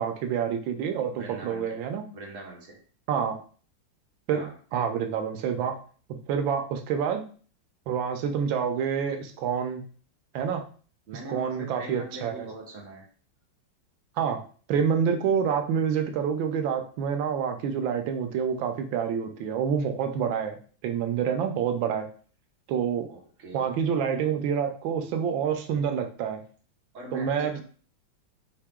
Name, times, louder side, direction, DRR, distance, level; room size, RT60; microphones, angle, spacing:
voice 1, 0.0-2.0 3.1-3.4 4.3-5.8 6.1-7.2 7.9-9.8 10.3-10.6 11.3-12.5 14.2-14.4 14.7-20.6 20.8-22.1 22.7-23.1 23.5-26.4 27.1-27.6, right 7 dB, 90° right, 6 dB, 1.4 m, -27 dB
voice 2, 1.1-2.8 4.3-4.6 11.1-13.1 23.1-23.8 26.9-27.6, right 2 dB, 45° right, -1 dB, 1.4 m, -42 dB
4.8 x 2.8 x 3.6 m, 0.41 s
omnidirectional pair, 2.1 m